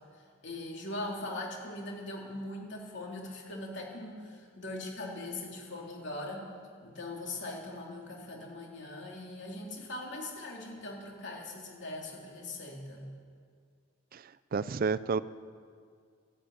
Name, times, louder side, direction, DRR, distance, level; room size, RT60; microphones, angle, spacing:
voice 1, 0.1-6.5 6.8-13.1, left 2 dB, 55° left, -1 dB, 3.2 m, -41 dB
voice 2, 14.1-15.2, right 5 dB, 45° right, 16 dB, 0.4 m, -31 dB
13.0 x 12.5 x 8.5 m, 2.1 s
head